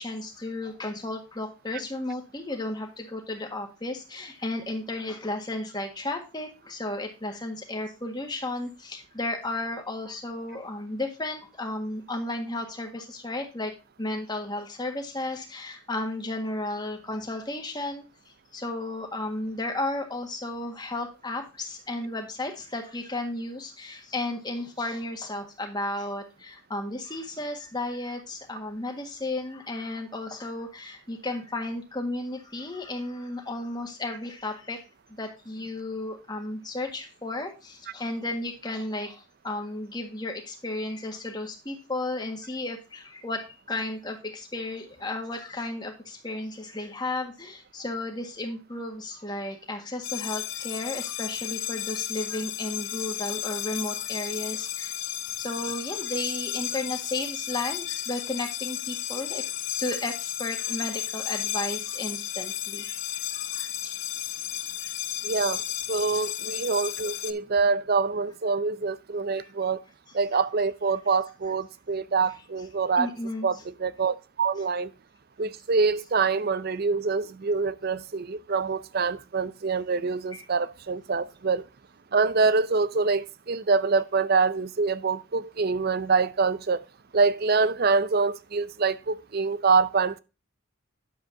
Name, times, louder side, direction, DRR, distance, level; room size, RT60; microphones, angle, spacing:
voice 1, 0.0-13.7 14.0-34.8 35.1-59.5 59.8-64.0 64.6-65.0 65.9-66.2 67.0-67.1 69.4-69.5 73.0-73.5 80.3-80.4, left 2 dB, 20° left, 1.7 m, -34 dB
sound 1, 50.0-67.3, left 13 dB, 55° left, 0.6 m, -33 dB
voice 2, 65.2-65.6 65.9-69.8 70.1-73.1 73.4-74.9 75.4-81.7 82.1-86.8 87.1-90.2, right 4 dB, 45° right, 0.5 m, -25 dB
10.0 x 7.6 x 2.7 m
head